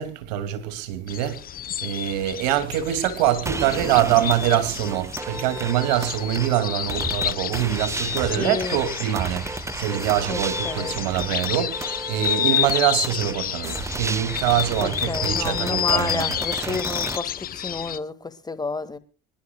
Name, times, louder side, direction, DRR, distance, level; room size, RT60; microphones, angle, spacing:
voice 1, 0.0-1.4 1.8-16.8, right 12 dB, 85° right, 2.3 m, -24 dB
sound 1, 1.1-18.0, left 10 dB, 45° left, 0.9 m, -30 dB
sound 2, 3.5-17.2, right 3 dB, 15° right, 0.9 m, -33 dB
voice 2, 8.4-8.8 10.3-10.9 14.8-19.0, left 3 dB, 20° left, 1.8 m, -30 dB
26.0 x 11.5 x 2.2 m
supercardioid pair, 80°, 21 cm